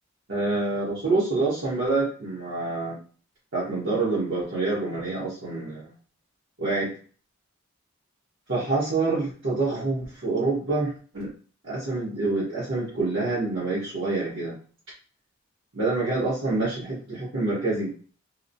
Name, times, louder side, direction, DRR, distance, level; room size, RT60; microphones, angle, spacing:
voice 1, 0.3-3.0 3.5-5.9 6.6-6.9 8.5-11.3 11.6-14.6 15.7-17.9, right 3 dB, 60° right, -9 dB, 1.0 m, -27 dB
2.9 x 2.0 x 2.6 m, 0.41 s
head